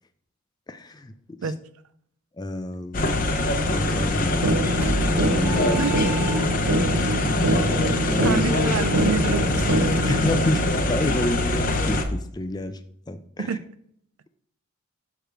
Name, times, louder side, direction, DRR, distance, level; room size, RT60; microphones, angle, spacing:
voice 1, 0.7-1.1 1.4-1.5 2.4-3.3 3.7-4.8 5.1-5.9 6.3-6.6 8.1-8.4 10.1-12.8 13.1-13.6, left 1 dB, 20° left, 10 dB, 0.4 m, -29 dB
sound 1, 2.9-12.0, left 2 dB, 35° left, 0.7 m, -24 dB
sound 2, 4.4-10.4, right 1 dB, 45° right, 0.9 m, -25 dB
sound 3, 4.8-6.9, right 2 dB, 10° right, 1.5 m, -31 dB
voice 2, 8.2-9.9 10.2-10.7 13.5-13.6, right 5 dB, 70° right, 13 dB, 0.5 m, -28 dB
6.6 x 4.9 x 4.5 m, 0.69 s
head